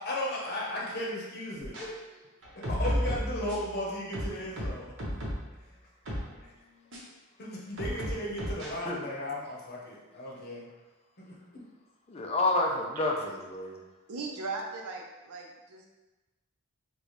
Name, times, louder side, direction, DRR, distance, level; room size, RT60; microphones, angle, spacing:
voice 1, 0.0-1.8 2.5-4.9 7.4-10.7 11.2-11.6, left 1 dB, 45° left, -3 dB, 0.8 m, -36 dB
sound 1, 1.6-1.8 2.4-3.7 4.1-5.5 6.0-6.3 6.9-7.0 7.8-8.7, equal, 60° right, 0.9 m, -33 dB
voice 2, 12.1-13.8, left 2 dB, 30° left, 0 dB, 0.4 m, -29 dB
voice 3, 14.1-15.9, right 3 dB, 85° right, 0 dB, 0.6 m, -38 dB
4.0 x 2.2 x 3.1 m, 1.1 s
head